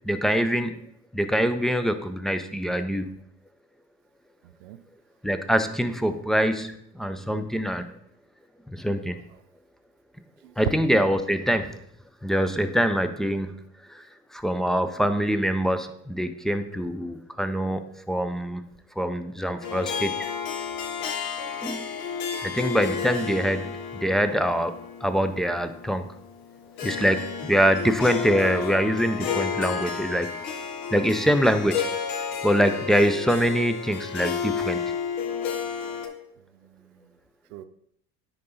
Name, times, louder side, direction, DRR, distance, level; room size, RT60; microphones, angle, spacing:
voice 1, 0.0-0.8 1.1-3.1 5.2-7.9 8.7-9.2 10.6-11.8 12.2-13.6 13.9-14.1 14.3-17.8 18.1-18.6 19.0-20.1 21.6-21.8 22.4-26.0 26.8-30.3 30.9-31.8 32.4-34.8, equal, ahead, 9 dB, 0.4 m, -24 dB
voice 2, 4.4-4.8 10.4-10.5 31.1-31.3 36.5-37.0 37.5-37.6, right 13 dB, 70° right, 9 dB, 0.7 m, -47 dB
Harp, 19.6-36.1, left 7 dB, 65° left, 1.3 m, -32 dB
9.7 x 3.9 x 4.0 m, 0.70 s
hypercardioid pair, 75°, 47 cm